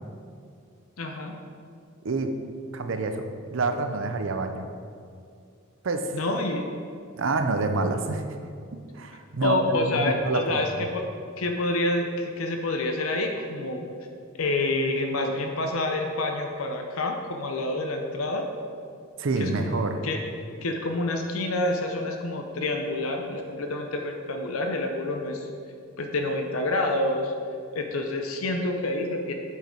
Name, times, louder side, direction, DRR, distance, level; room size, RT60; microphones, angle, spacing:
voice 1, 1.0-1.3 6.1-6.7 9.4-11.0 11.4-13.9 14.4-18.4 19.4-20.2 20.6-25.5 26.0-27.3 27.7-29.3, left 2 dB, 85° left, 3 dB, 0.7 m, -28 dB
voice 2, 2.0-2.4 2.7-4.7 5.8-6.2 7.2-8.2 8.7-10.4 10.8-10.9 19.2-20.0, right 3 dB, 65° right, 7 dB, 0.6 m, -27 dB
8.0 x 4.8 x 4.5 m, 2.3 s
head